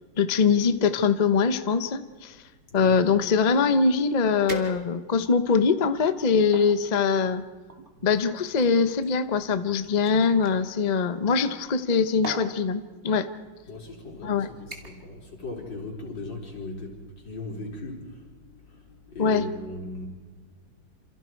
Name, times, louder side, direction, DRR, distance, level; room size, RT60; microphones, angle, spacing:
voice 1, 0.2-2.4 2.7-7.4 8.0-13.3 14.2-14.5 19.2-19.4, left 5 dB, 90° left, 10 dB, 0.3 m, -23 dB
sound 1, 4.5-5.2 5.9-6.7 7.7-10.6 11.7-11.9 12.2-12.5 13.4-13.6 14.0-14.3 14.7-15.1 15.4-15.8 16.2-16.3, right 1 dB, 25° right, 2.3 m, -40 dB
voice 2, 13.7-20.1, left 2 dB, 60° left, -1 dB, 5.0 m, -38 dB
28.0 x 27.5 x 4.7 m, 1.4 s
omnidirectional pair, 2.3 m